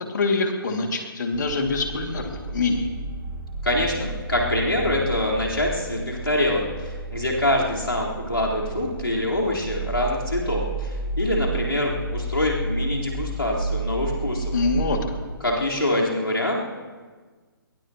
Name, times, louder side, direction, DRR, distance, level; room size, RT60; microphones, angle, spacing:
voice 1, 0.1-2.9 14.5-15.2, left 3 dB, 50° left, 3 dB, 2.5 m, -25 dB
sound 1, 1.3-15.6, right 2 dB, 25° right, 2.2 m, -32 dB
voice 2, 3.6-14.5 15.4-16.5, left 1 dB, 85° left, -5 dB, 4.3 m, -25 dB
22.5 x 21.0 x 3.1 m, 1.4 s
figure-of-eight pair, 135°, 12 cm